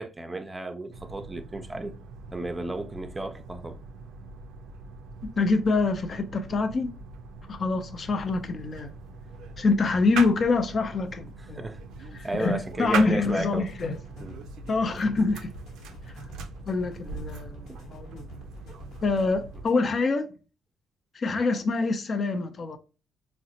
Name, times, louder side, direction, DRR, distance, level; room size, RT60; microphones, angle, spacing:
voice 1, 0.0-1.9 2.3-3.8 11.5-13.7 14.2-14.4 17.7-17.8, right 2 dB, 20° right, 0.5 m, -34 dB
sound 1, 0.9-19.7, right 4 dB, 85° right, 0.3 m, -40 dB
voice 2, 5.4-6.9 7.5-8.9 9.6-11.7 12.1-14.0 14.7-15.5 16.7-18.2 19.0-20.3 21.1-22.8, left 3 dB, 45° left, 0.5 m, -26 dB
sound 2, 13.6-19.7, equal, 75° left, 1.0 m, -47 dB
3.9 x 2.1 x 2.7 m
cardioid pair, 90°, 0 cm